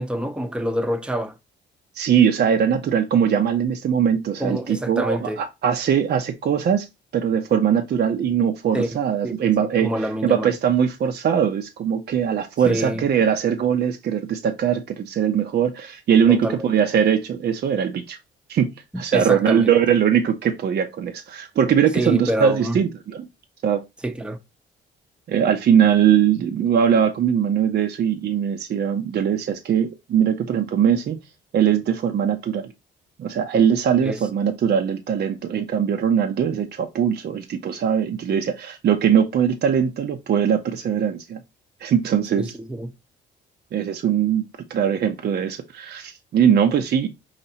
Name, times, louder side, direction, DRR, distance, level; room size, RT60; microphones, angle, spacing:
voice 1, 0.0-1.4 4.4-5.4 8.7-8.9 9.2-10.5 12.6-13.1 16.3-16.7 18.9-19.7 21.9-22.8 24.0-24.4 34.0-34.2 42.4-42.9, equal, 5° right, 0.7 m, -27 dB
voice 2, 1.9-6.9 7.1-18.2 18.5-23.3 23.6-23.8 25.3-31.2 31.5-32.7 33.2-41.4 41.8-42.5 43.7-47.1, right 8 dB, 55° right, 0.7 m, -21 dB
5.7 x 2.9 x 2.8 m
cardioid pair, 90°, 20 cm